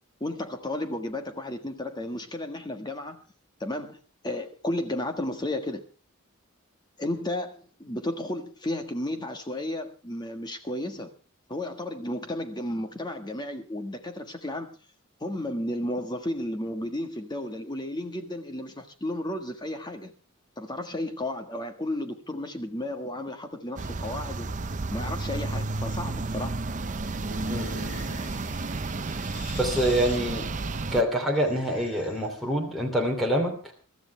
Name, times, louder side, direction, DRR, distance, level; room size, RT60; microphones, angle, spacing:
voice 1, 0.2-3.2 3.6-4.0 4.2-5.8 7.0-11.1 11.5-14.8 15.2-20.1 20.6-24.5 24.9-26.6, left 1 dB, 20° left, 1.5 m, -33 dB
sound 1, 23.8-31.0, right 3 dB, 35° right, 0.7 m, -32 dB
sound 2, 27.0-32.5, left 2 dB, 85° left, 3.3 m, -43 dB
voice 2, 29.6-30.5 30.9-33.5, equal, ahead, 2.8 m, -25 dB
23.5 x 13.0 x 3.3 m
head